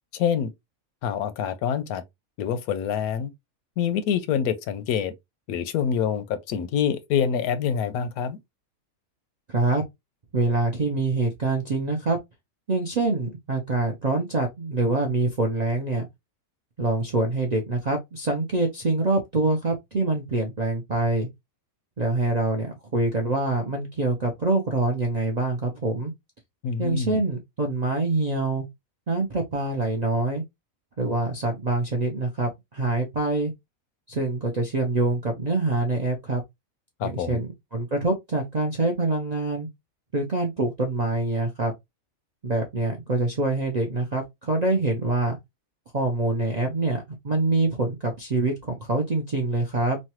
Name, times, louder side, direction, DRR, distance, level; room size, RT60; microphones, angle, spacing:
voice 1, 0.1-0.5 1.0-2.0 2.4-3.3 3.8-5.1 5.5-8.4 26.6-27.2 37.0-37.4, left 8 dB, 90° left, 1.1 m, -26 dB
voice 2, 9.5-9.8 10.3-12.2 12.7-16.1 16.8-21.3 22.0-26.1 26.8-28.7 29.1-30.4 31.0-33.5 34.1-36.4 37.0-39.7 40.1-41.7 42.4-45.4 45.9-50.0, right 2 dB, 60° right, 0.4 m, -25 dB
3.1 x 2.2 x 2.8 m
omnidirectional pair, 1.5 m